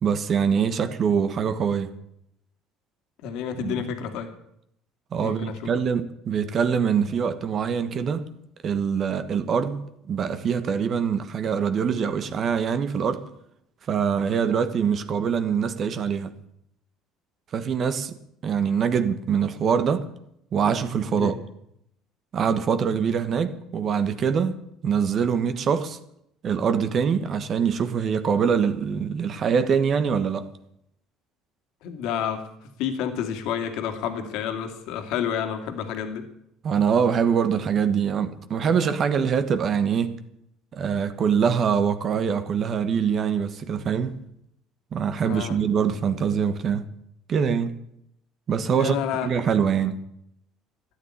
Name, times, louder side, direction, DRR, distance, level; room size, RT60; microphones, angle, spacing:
voice 1, 0.0-1.9 3.6-3.9 5.1-8.3 8.6-9.8 10.1-13.3 13.9-16.3 17.5-18.1 18.4-20.1 20.5-21.4 22.3-26.0 26.4-30.5 36.6-40.1 40.7-44.1 44.9-46.9 47.3-47.7 48.5-48.9 49.2-50.0, right 7 dB, 45° right, 1.4 m, -24 dB
voice 2, 3.2-4.3 5.2-5.7 21.1-21.3 31.8-32.5 32.8-36.3 45.2-45.6 48.7-49.5, left 8 dB, 75° left, 2.2 m, -29 dB
14.0 x 9.8 x 9.8 m
cardioid pair, 105°, 0 cm